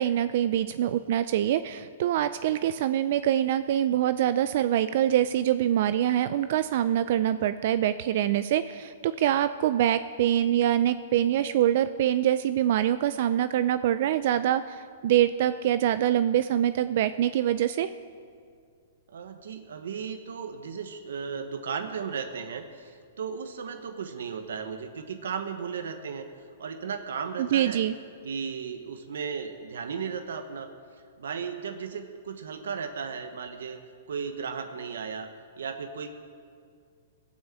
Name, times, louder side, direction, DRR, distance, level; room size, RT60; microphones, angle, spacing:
voice 1, 0.0-17.9 27.4-27.9, right 11 dB, 50° right, 13 dB, 0.3 m, -25 dB
voice 2, 19.1-26.3 26.6-27.8 28.2-30.7 31.2-33.8 34.1-35.3 35.6-36.1, right 6 dB, 85° right, 7 dB, 1.0 m, -35 dB
16.5 x 6.3 x 7.4 m, 2.2 s
hypercardioid pair, 155°, 0 cm